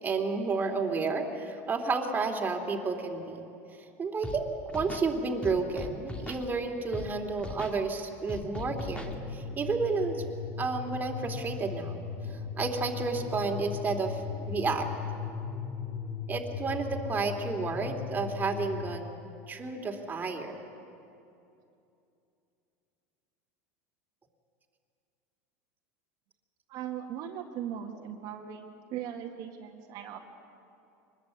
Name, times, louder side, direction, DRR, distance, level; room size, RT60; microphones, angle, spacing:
voice 1, 0.0-3.4 4.0-10.2 10.6-12.0 12.6-14.2 14.5-14.9 16.3-19.1 19.5-20.6, right 4 dB, 20° right, 2 dB, 2.9 m, -31 dB
Scratching (performance technique), 4.2-4.4 4.7-5.1 5.4-6.4 6.9-7.1 7.4-7.8 8.3-9.1, left 2 dB, 15° left, 2.4 m, -39 dB
sound 1, 8.6-19.0, left 6 dB, 35° left, 1.7 m, -38 dB
voice 2, 26.7-28.7 28.9-30.2, right 9 dB, 55° right, 1 dB, 2.0 m, -38 dB
24.5 x 20.5 x 8.3 m, 2.7 s
supercardioid pair, 120°, 8 cm